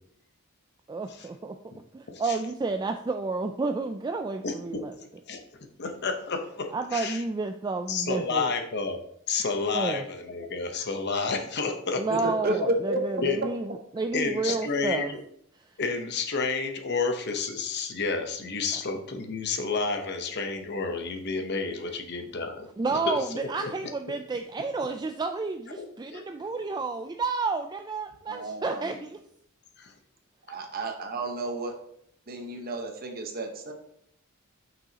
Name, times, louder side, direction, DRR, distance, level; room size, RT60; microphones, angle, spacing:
voice 1, 0.9-4.9 6.7-8.5 9.7-10.0 11.9-15.1 15.5-15.7 18.7-18.8 22.8-29.2, right 3 dB, 20° right, 6 dB, 0.3 m, -31 dB
voice 2, 4.4-4.8 5.3-5.4 5.8-7.2 7.9-9.0 9.3-12.0 13.2-13.4 14.1-15.2 15.8-23.2 23.6-23.7 25.8-25.9 26.1-26.2 29.8-29.9, left 4 dB, 55° left, 5 dB, 0.9 m, -30 dB
voice 3, 12.1-13.2 28.3-28.9 30.5-31.7 32.3-33.7, right 2 dB, 45° right, 4 dB, 1.0 m, -31 dB
7.9 x 6.1 x 2.9 m, 0.71 s
head